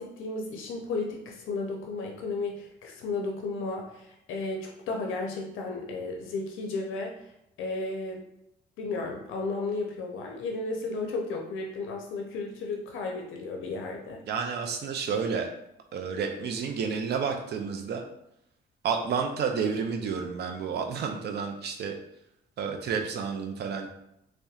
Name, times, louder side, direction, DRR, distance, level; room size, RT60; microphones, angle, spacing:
voice 1, 0.0-7.3 7.6-8.2 8.8-14.2, left 3 dB, 85° left, 1 dB, 0.5 m, -34 dB
voice 2, 14.2-15.5 15.9-18.0 18.8-22.0 22.6-23.9, right 6 dB, 55° right, 4 dB, 0.5 m, -30 dB
2.7 x 2.2 x 2.3 m, 0.81 s
cardioid pair, 90°, 20 cm